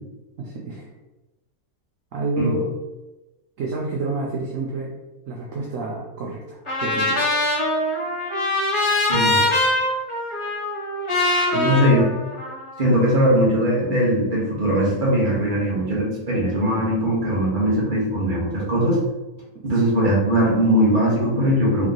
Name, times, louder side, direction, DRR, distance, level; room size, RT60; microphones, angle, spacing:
voice 1, 0.4-0.9 2.1-2.7 3.6-4.9 5.3-7.3 9.2-9.5 11.5-12.1 19.5-19.6, right 3 dB, 65° right, -2 dB, 0.9 m, -28 dB
Trumpet, 6.7-12.9, left 2 dB, 25° left, 0.9 m, -23 dB
voice 2, 11.6-12.0 12.8-19.0 19.6-21.9, equal, 35° right, -4 dB, 1.3 m, -20 dB
3.5 x 3.1 x 3.8 m, 1.1 s
omnidirectional pair, 1.6 m